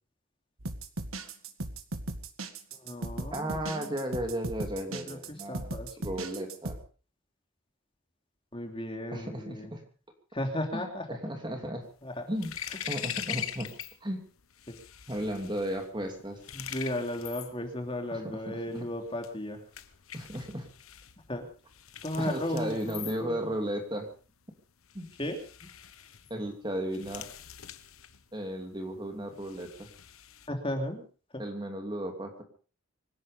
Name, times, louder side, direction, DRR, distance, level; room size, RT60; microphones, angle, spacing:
sound 1, 0.6-6.8, right 2 dB, 85° right, 1.8 m, -37 dB
voice 1, 2.7-3.9 4.9-6.1 8.5-9.7 10.3-11.1 12.0-12.2 14.7-14.8 16.5-19.7 21.3-21.5 22.0-23.5 25.2-25.7 30.5-31.0 31.3-31.4, left 1 dB, 25° left, 4 dB, 2.9 m, -35 dB
voice 2, 3.3-5.7 6.0-6.8 9.1-9.8 10.7-11.9 12.3-12.5 12.9-13.7 14.0-14.2 15.1-16.4 18.1-18.9 20.1-20.7 22.2-24.1 24.9-25.1 26.3-27.2 28.3-29.9 31.4-32.4, equal, 20° right, 4 dB, 2.8 m, -34 dB
sound 2, 11.8-14.0 14.3-30.5, left 10 dB, 90° left, 1.3 m, -43 dB
25.5 x 11.0 x 5.1 m, 0.39 s
head